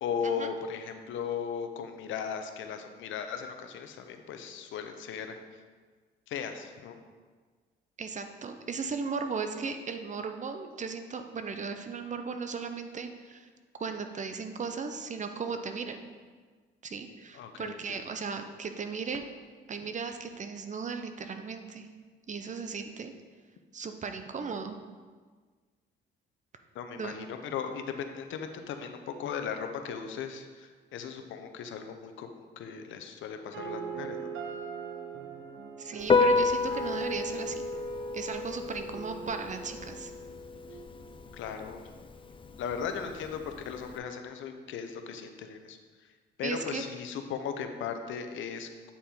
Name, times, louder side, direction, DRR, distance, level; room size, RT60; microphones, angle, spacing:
voice 1, 0.0-5.6 6.3-7.0 17.3-18.0 19.8-19.9 26.7-34.3 41.4-41.8 42.6-48.9, left 7 dB, 75° left, 7 dB, 0.7 m, -37 dB
voice 2, 8.0-13.5 13.8-16.1 16.8-19.3 19.7-21.9 22.3-23.1 23.7-24.8 27.0-27.2 35.8-37.6 38.1-40.1 46.4-46.8, right 5 dB, 40° right, 7 dB, 0.6 m, -36 dB
sound 1, 33.5-41.5, right 6 dB, 75° right, 0.8 m, -42 dB
Piano, 36.0-44.0, left 4 dB, 25° left, 0.4 m, -31 dB
8.5 x 4.2 x 3.8 m, 1.5 s
cardioid pair, 90°, 20 cm